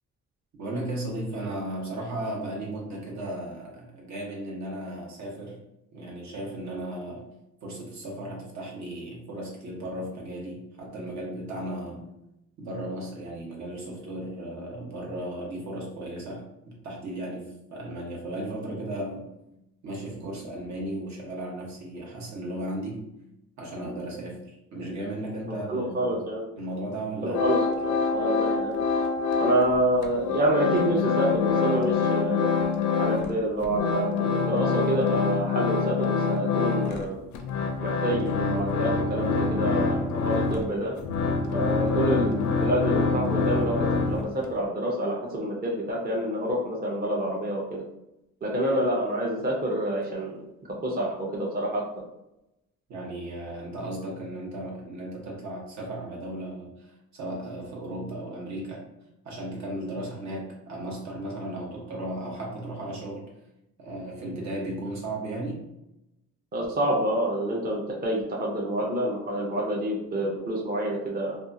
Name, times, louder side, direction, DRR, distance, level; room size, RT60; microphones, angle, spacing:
voice 1, 0.6-5.6 5.9-7.3 7.6-12.1 12.6-19.3 19.8-23.0 23.6-26.2 26.6-27.4 52.9-58.8 59.2-63.3 63.8-65.7, right 1 dB, 65° right, -3 dB, 1.1 m, -35 dB
voice 2, 25.7-26.5 27.2-28.7 29.4-32.5 33.0-37.2 37.8-41.0 41.5-47.8 48.4-50.3 50.8-51.8 66.5-71.4, right 1 dB, 30° right, -3 dB, 0.7 m, -27 dB
sound 1, 27.3-29.8 30.0-33.4 33.6-44.5, left 5 dB, 75° left, 0.5 m, -26 dB
2.6 x 2.3 x 2.6 m, 0.88 s
cardioid pair, 90°, 30 cm